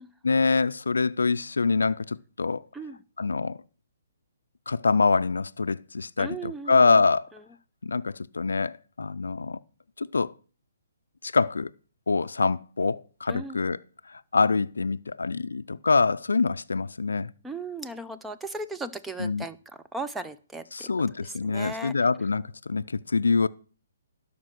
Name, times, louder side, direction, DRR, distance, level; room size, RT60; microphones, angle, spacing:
voice 1, 0.2-2.6 3.2-3.6 4.7-7.3 7.8-9.6 10.0-10.3 11.2-11.7 12.1-13.8 14.1-17.3 19.2-19.5 20.7-23.5, left 4 dB, 85° left, 0.4 m, -25 dB
voice 2, 6.2-7.0 13.3-13.6 17.4-19.6 19.9-20.9 21.5-21.9, right 2 dB, 5° right, 0.6 m, -36 dB
12.5 x 5.2 x 6.4 m
hypercardioid pair, 145°, 0 cm